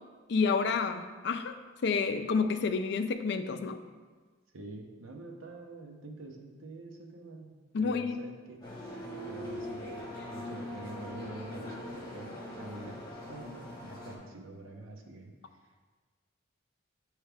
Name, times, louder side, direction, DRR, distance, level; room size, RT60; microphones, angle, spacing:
voice 1, 0.3-1.5 1.8-3.8 7.7-8.1, left 5 dB, 60° left, 8 dB, 0.4 m, -29 dB
voice 2, 4.5-7.5 7.8-8.6 9.3-15.6, right 2 dB, 85° right, 2 dB, 0.8 m, -46 dB
sound 1, 8.6-14.2, left 1 dB, 20° left, 1.3 m, -41 dB
8.8 x 3.2 x 3.4 m, 1.4 s
head